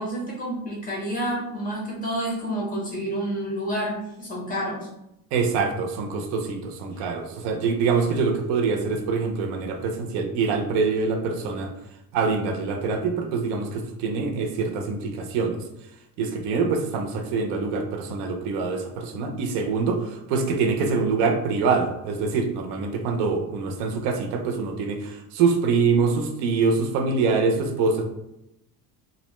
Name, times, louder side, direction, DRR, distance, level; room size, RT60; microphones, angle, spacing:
voice 1, 0.0-4.9, right 1 dB, 20° left, -4 dB, 0.5 m, -29 dB
voice 2, 5.3-11.7 12.1-15.6 16.2-28.0, right 4 dB, 70° right, 4 dB, 0.6 m, -25 dB
2.6 x 2.1 x 3.0 m, 0.84 s
cardioid pair, 175°, 42 cm